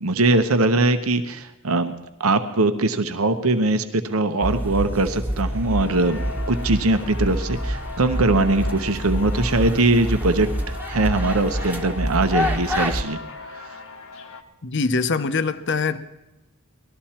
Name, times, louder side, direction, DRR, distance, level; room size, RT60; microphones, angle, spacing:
voice 1, 0.0-1.9 2.2-6.2 6.5-13.2 13.5-13.7, right 2 dB, 90° right, 9 dB, 0.9 m, -21 dB
sound 1, 4.4-13.0, equal, 10° right, 1.1 m, -27 dB
sound 2, 5.8-14.4, left 4 dB, 70° left, 1.2 m, -40 dB
voice 2, 14.6-16.0, left 4 dB, 55° left, 11 dB, 0.7 m, -23 dB
19.5 x 13.0 x 4.3 m, 0.97 s
head